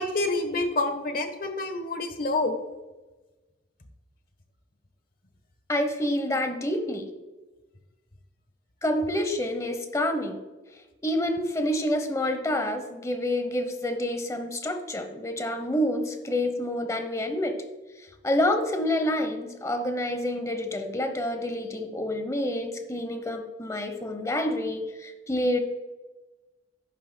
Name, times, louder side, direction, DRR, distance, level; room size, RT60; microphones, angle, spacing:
voice 1, 0.0-2.6, left 2 dB, 50° left, 7 dB, 1.1 m, -27 dB
voice 2, 5.7-7.1 8.8-10.4 11.0-17.6 18.2-25.6, left 1 dB, 15° left, 7 dB, 0.9 m, -28 dB
11.0 x 9.6 x 2.2 m, 1.2 s
head